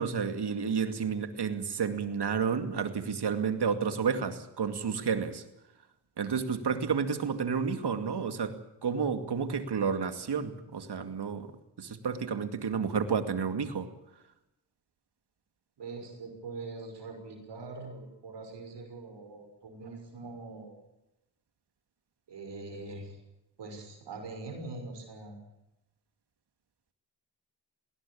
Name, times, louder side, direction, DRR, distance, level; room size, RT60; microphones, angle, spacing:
voice 1, 0.0-5.4 6.2-8.6 8.8-11.5 11.8-13.9, right 6 dB, 75° right, 8 dB, 2.4 m, -31 dB
voice 2, 15.8-20.8 22.3-23.2 23.6-25.4, right 3 dB, 90° right, 4 dB, 6.0 m, -43 dB
20.0 x 18.5 x 8.6 m, 0.89 s
cardioid pair, 45°, 41 cm